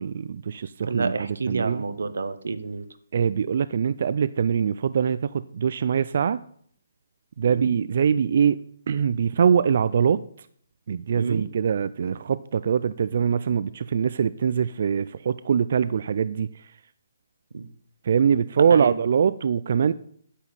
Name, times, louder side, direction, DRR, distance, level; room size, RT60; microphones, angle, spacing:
voice 1, 0.0-1.8 3.1-6.4 7.4-8.6 8.9-10.5 10.9-16.7 18.0-19.9, right 7 dB, 50° right, 15 dB, 0.4 m, -23 dB
voice 2, 0.8-2.8 7.5-7.7 11.2-11.5 17.5-17.7 18.7-18.9, right 4 dB, 85° right, 12 dB, 1.2 m, -29 dB
9.8 x 7.0 x 9.0 m, 0.62 s
hypercardioid pair, 170°, 0 cm